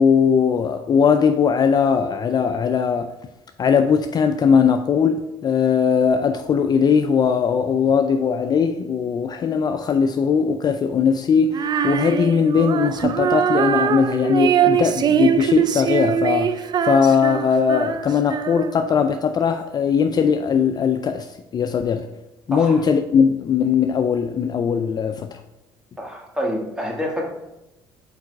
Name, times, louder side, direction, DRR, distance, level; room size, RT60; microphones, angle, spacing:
voice 1, 0.0-3.1 3.6-22.1 22.5-25.4, left 6 dB, 40° left, 0.4 m, -19 dB
Female singing, 11.5-18.9, right 8 dB, 40° right, 0.4 m, -22 dB
voice 2, 26.0-27.3, equal, 5° right, 1.7 m, -27 dB
4.7 x 4.7 x 4.6 m
supercardioid pair, 80°, 11 cm